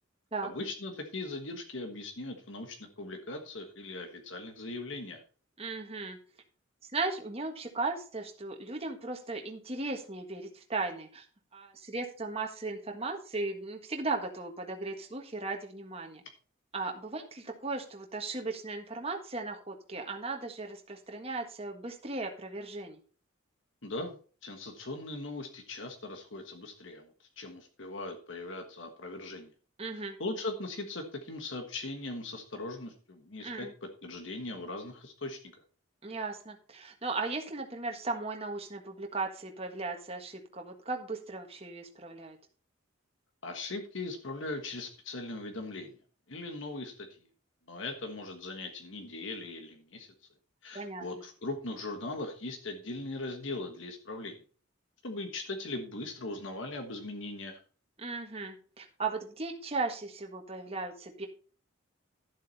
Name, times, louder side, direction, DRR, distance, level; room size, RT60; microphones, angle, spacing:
voice 1, 0.4-5.2 23.8-29.5 29.9-35.4 43.4-45.9 46.3-47.1 47.7-50.1 50.6-54.4 55.0-57.6, left 2 dB, 65° left, 5 dB, 1.4 m, -39 dB
voice 2, 5.6-6.2 6.9-11.3 11.5-16.2 16.7-23.0 29.8-30.2 33.4-33.7 36.0-42.4 50.7-51.1 58.0-61.3, right 3 dB, 30° right, 3 dB, 1.5 m, -37 dB
12.0 x 7.6 x 4.1 m, 0.40 s
head